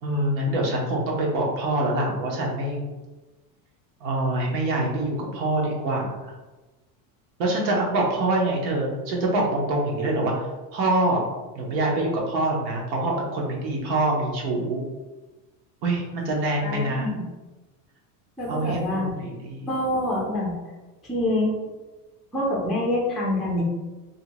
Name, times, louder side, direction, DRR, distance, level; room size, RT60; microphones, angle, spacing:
voice 1, 0.0-2.9 4.0-6.3 7.4-11.3 11.6-14.8 15.8-17.1 18.5-19.7, right 2 dB, 85° right, -2 dB, 1.0 m, -25 dB
voice 2, 16.6-17.2 18.4-19.1 19.7-20.5 21.1-21.5 22.3-23.6, left 1 dB, ahead, -5 dB, 0.3 m, -26 dB
2.7 x 2.1 x 2.8 m, 1.2 s
supercardioid pair, 130°, 48 cm